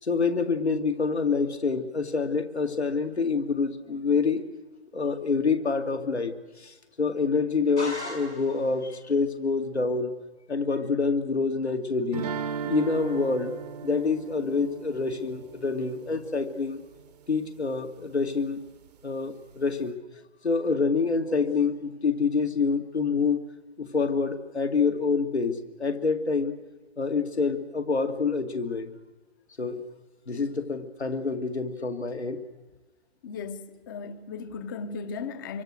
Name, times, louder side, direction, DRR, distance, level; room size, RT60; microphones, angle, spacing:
voice 1, 0.0-4.4 4.9-10.1 10.5-12.3 12.7-13.5 13.8-16.8 17.3-18.6 19.0-20.0 20.4-23.4 23.8-26.5 27.0-28.9 29.6-29.8 30.3-32.4, left 4 dB, 75° left, 2.3 m, -27 dB
sound 1, 7.8-8.8, left 1 dB, 90° left, 7.5 m, -37 dB
sound 2, 12.1-17.1, right 6 dB, 35° right, 0.9 m, -37 dB
voice 2, 33.2-35.6, left 5 dB, 20° left, 0.8 m, -36 dB
26.0 x 23.5 x 6.5 m
figure-of-eight pair, 135°, 33 cm